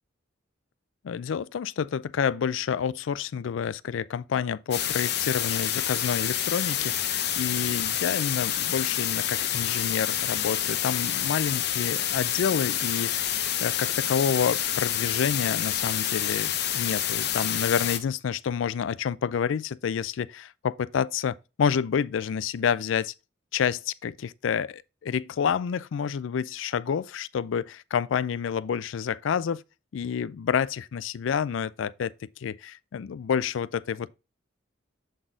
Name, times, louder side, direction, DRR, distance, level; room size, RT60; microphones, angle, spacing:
voice 1, 1.0-23.1 23.5-29.6 29.9-32.1 32.4-34.1, left 7 dB, 80° left, 0.4 m, -29 dB
sound 1, 4.7-18.0, left 10 dB, 55° left, 0.8 m, -28 dB
7.6 x 4.0 x 3.7 m
head